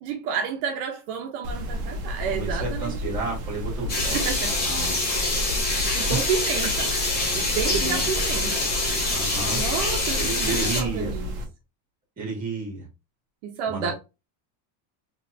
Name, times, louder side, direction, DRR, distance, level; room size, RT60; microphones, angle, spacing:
voice 1, 0.0-3.2 4.1-4.5 5.7-6.9 7.3-8.7 9.6-11.3 13.4-13.9, right 7 dB, 65° right, 0.8 m, -30 dB
sound 1, 1.4-11.4, equal, 35° right, 0.8 m, -32 dB
voice 2, 2.3-4.2 4.6-5.0 7.7-8.0 9.1-9.6 10.2-11.1 12.2-12.9 13.7-13.9, right 3 dB, 15° right, 1.7 m, -31 dB
sound 2, 3.9-10.8, left 2 dB, 20° left, 0.8 m, -26 dB
3.3 x 3.1 x 2.6 m
cardioid pair, 175°, 46 cm